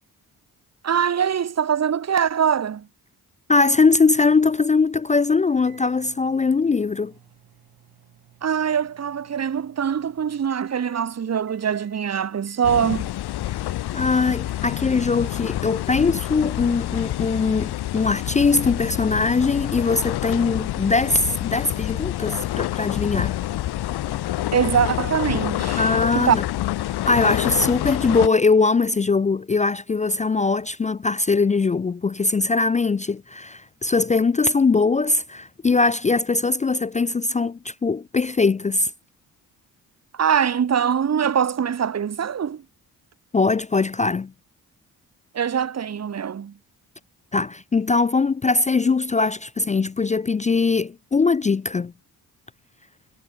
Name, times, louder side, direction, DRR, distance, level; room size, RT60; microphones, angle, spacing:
voice 1, 0.8-2.9 8.4-13.1 24.5-26.4 40.1-42.6 45.3-46.5, right 8 dB, 45° right, 1.1 m, -23 dB
voice 2, 3.5-7.1 13.9-23.4 25.8-26.4 27.1-38.9 43.3-44.3 47.3-51.9, left 4 dB, 20° left, 0.4 m, -21 dB
sound 1, 5.5-11.1 11.5-12.1 12.5-13.1 13.5-14.1 14.5-15.1, right 10 dB, 80° right, 7.3 m, -55 dB
sound 2, 12.6-28.3, left 14 dB, 90° left, 2.2 m, -27 dB
cardioid pair, 60°, 38 cm